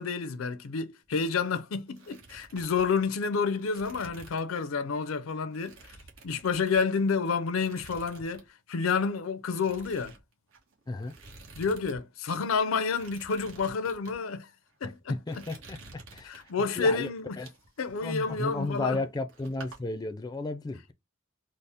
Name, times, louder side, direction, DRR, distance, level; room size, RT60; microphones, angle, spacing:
voice 1, 0.0-5.8 6.2-8.4 8.7-10.1 11.6-14.5 14.8-15.4 16.2-17.4 17.8-19.0, left 5 dB, 80° left, 0.5 m, -29 dB
sound 1, 1.0-1.6 1.9-4.6 4.9-5.1 5.5-7.1 7.5-8.5 8.7-9.0 9.5-12.0 12.2-12.3 12.8-14.2 14.7-14.9 15.3-16.7 17.2-19.0 19.3-19.8, right 3 dB, 80° right, 1.2 m, -51 dB
voice 2, 15.1-16.4 16.8-17.1 17.4-17.5 18.0-20.9, left 2 dB, 20° left, 0.4 m, -33 dB
4.1 x 2.0 x 3.3 m
head